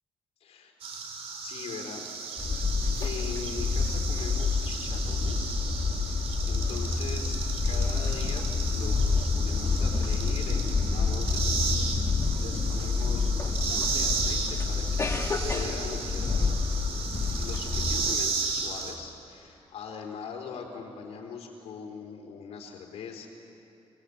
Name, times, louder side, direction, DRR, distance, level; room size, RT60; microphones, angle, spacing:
voice 1, 0.4-0.7 1.4-2.0 3.0-5.5 6.0-7.4 7.6-11.4 11.8-14.4 14.7-15.2 15.5-16.5 17.4-23.3, left 6 dB, 75° left, 0 dB, 3.8 m, -41 dB
sound 1, 0.8-18.9, right 5 dB, 65° right, 3.3 m, -34 dB
sound 2, 2.4-18.2, left 4 dB, 25° left, 1.6 m, -28 dB
23.5 x 19.5 x 8.4 m, 2.8 s
cardioid pair, 150°, 11 cm